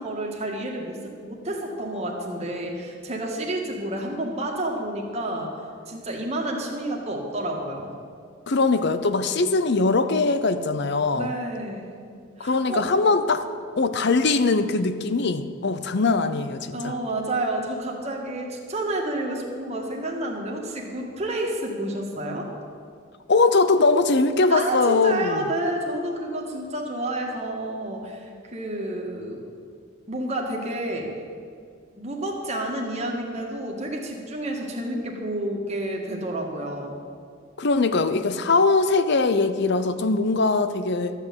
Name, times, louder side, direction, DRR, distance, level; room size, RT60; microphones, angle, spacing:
voice 1, 0.0-5.5 5.9-7.9 11.1-11.9 12.4-12.8 16.7-22.5 24.5-29.4 30.1-31.1 32.0-37.0, right 1 dB, 35° right, -1 dB, 1.8 m, -30 dB
voice 2, 8.5-11.3 12.4-13.5 13.8-16.9 23.3-25.4 37.6-41.1, left 3 dB, 55° left, 11 dB, 0.7 m, -21 dB
13.0 x 6.5 x 8.7 m, 2.2 s
head